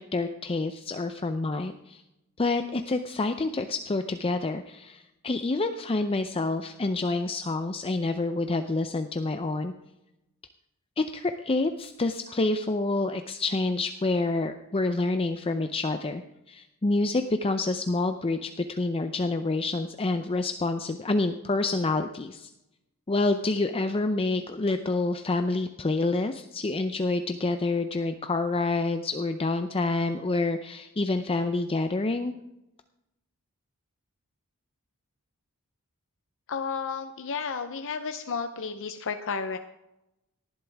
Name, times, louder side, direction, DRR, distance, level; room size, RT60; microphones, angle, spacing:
voice 1, 0.0-2.0 2.4-9.7 11.0-16.2 16.5-22.5 23.1-32.3, left 2 dB, 25° left, 8 dB, 0.5 m, -28 dB
voice 2, 36.5-39.6, left 5 dB, 60° left, 7 dB, 0.7 m, -32 dB
18.5 x 11.5 x 3.5 m, 0.90 s
head